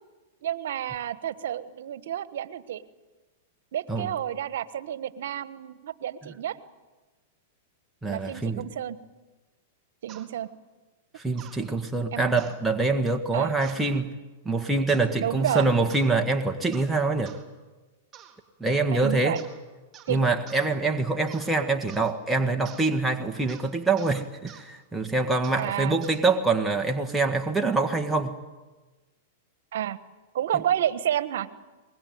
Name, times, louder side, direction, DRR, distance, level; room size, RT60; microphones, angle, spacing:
voice 1, 0.4-2.8 3.7-6.6 8.1-9.0 10.0-10.5 12.1-12.2 13.3-13.5 15.2-15.7 18.9-19.4 20.1-20.2 25.6-26.0 29.7-30.0 30.3-31.5, right 10 dB, 75° right, 1.3 m, -30 dB
voice 2, 8.0-8.6 11.1-14.1 14.4-17.3 18.6-19.4 20.1-28.4, right 3 dB, 5° right, 1.7 m, -25 dB
sound 1, 10.1-10.3 11.4-11.6 12.4-12.6 13.6-13.9 14.9-15.1 15.5-16.1 16.7-16.9 17.3-17.4 18.1-18.4 19.4-19.6 19.9-20.2 20.5-20.7 21.3-21.5 21.9-22.1 22.7-22.9 23.5-23.7 24.0-24.2 24.5-24.7 25.4-25.6 26.0-26.2, right 10 dB, 25° right, 3.9 m, -47 dB
24.0 x 21.0 x 9.4 m
hypercardioid pair, 120°, 0 cm